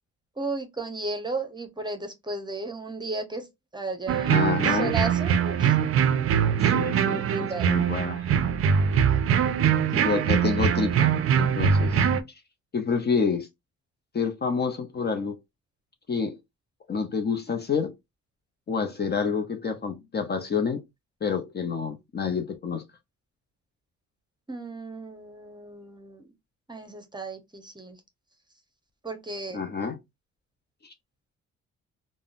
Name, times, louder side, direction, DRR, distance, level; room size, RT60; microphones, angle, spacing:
voice 1, 0.4-3.4 3.7-5.8 7.1-7.7 24.5-26.3 26.7-28.0 29.0-29.6, right 3 dB, 15° right, 0.8 m, -34 dB
sound 1, 4.1-12.2, right 8 dB, 50° right, 0.4 m, -22 dB
voice 2, 4.3-4.9 6.6-8.3 9.9-12.1 12.7-13.5 14.1-15.4 16.1-16.4 16.9-17.9 18.7-20.8 21.2-22.8 29.5-30.0 30.8-30.9, left 5 dB, 35° left, 0.5 m, -28 dB
3.6 x 2.1 x 2.4 m
cardioid pair, 90°, 30 cm